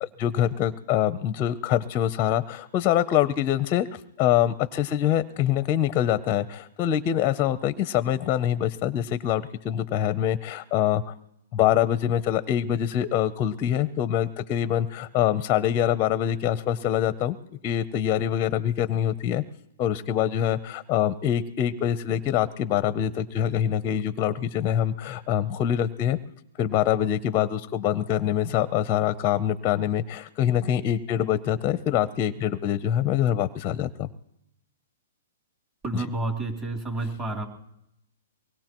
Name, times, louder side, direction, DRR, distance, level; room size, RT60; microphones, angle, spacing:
voice 1, 0.0-11.1 11.5-17.4 17.6-19.4 19.8-26.2 26.6-34.1 35.9-36.1, left 11 dB, 25° left, 12 dB, 0.6 m, -25 dB
voice 2, 35.8-37.5, right 2 dB, 20° right, 1 dB, 2.9 m, -30 dB
24.0 x 20.0 x 3.0 m, 0.79 s
hypercardioid pair, 150°, 0 cm